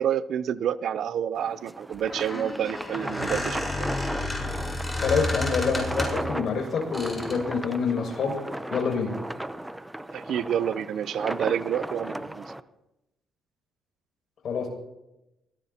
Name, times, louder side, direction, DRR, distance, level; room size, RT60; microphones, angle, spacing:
voice 1, 0.0-3.6 10.1-12.5, right 9 dB, 70° right, 16 dB, 0.6 m, -28 dB
sound 1, 1.3-12.6, right 1 dB, 10° right, 0.7 m, -36 dB
Squeak, 1.9-6.3 6.9-7.4, left 2 dB, 15° left, 6.8 m, -31 dB
voice 2, 5.0-8.4 8.7-9.1 14.4-14.7, left 5 dB, 60° left, 1 dB, 6.6 m, -27 dB
23.5 x 17.5 x 2.9 m, 0.92 s
cardioid pair, 90°, 0 cm